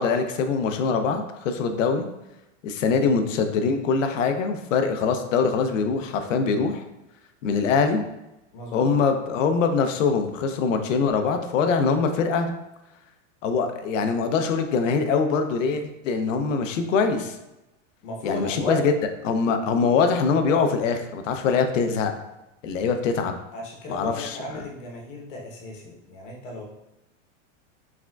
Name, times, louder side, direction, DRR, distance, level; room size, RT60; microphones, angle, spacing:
voice 1, 0.0-2.1 2.6-6.8 7.4-8.0 8.7-12.5 13.4-17.4 18.2-18.9 19.2-22.1 22.6-23.3 23.9-24.4, left 5 dB, 75° left, 7 dB, 0.7 m, -23 dB
voice 2, 8.5-8.9 18.0-18.8 23.5-26.6, equal, 40° left, -1 dB, 1.0 m, -34 dB
4.7 x 3.6 x 2.3 m, 0.93 s
supercardioid pair, 175°, 38 cm